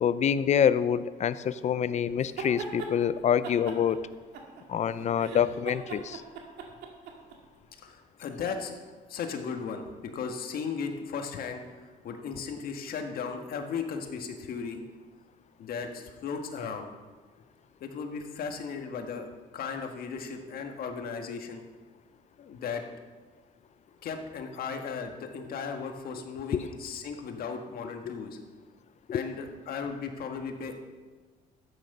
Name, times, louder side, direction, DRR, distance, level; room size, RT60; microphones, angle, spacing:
voice 1, 0.0-4.0 4.7-6.2 26.5-26.6 28.1-28.2 29.1-29.2, left 8 dB, 45° left, 15 dB, 0.6 m, -26 dB
sound 1, 2.2-2.9 3.4-4.8 5.2-7.4, right 5 dB, 75° right, 2.0 m, -39 dB
voice 2, 7.8-8.8 9.1-14.8 15.6-16.9 17.8-19.3 19.5-21.6 22.4-22.8 24.0-28.4 29.1-30.8, left 5 dB, 60° left, 4 dB, 1.7 m, -36 dB
13.0 x 9.2 x 5.5 m, 1.4 s
cardioid pair, 110°, 17 cm